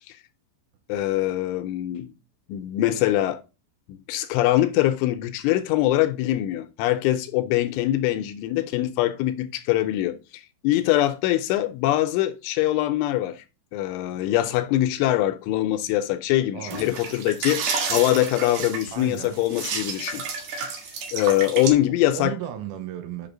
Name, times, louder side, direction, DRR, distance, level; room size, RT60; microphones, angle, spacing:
voice 1, 0.9-2.1 2.5-3.4 4.1-13.4 13.7-20.2 20.5-20.7 21.1-22.3, left 14 dB, 85° left, 2.9 m, -23 dB
voice 2, 16.5-16.9 18.9-19.4 22.0-23.3, right 11 dB, 85° right, 3.5 m, -34 dB
sound 1, 16.7-21.7, right 5 dB, 65° right, 2.9 m, -31 dB
8.0 x 6.0 x 3.8 m
omnidirectional pair, 5.8 m